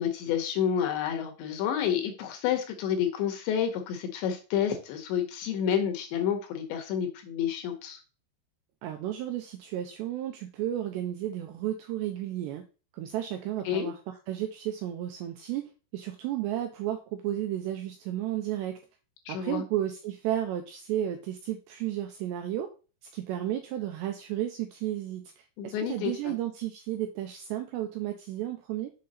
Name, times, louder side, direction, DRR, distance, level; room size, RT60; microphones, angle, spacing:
voice 1, 0.0-8.0 13.7-13.9 19.3-19.6 25.6-26.3, left 8 dB, 75° left, 5 dB, 3.0 m, -29 dB
voice 2, 8.8-12.6 12.9-18.8 19.3-22.7 23.1-28.9, right 12 dB, 85° right, 5 dB, 2.5 m, -33 dB
7.6 x 5.7 x 4.2 m, 0.34 s
omnidirectional pair, 5.7 m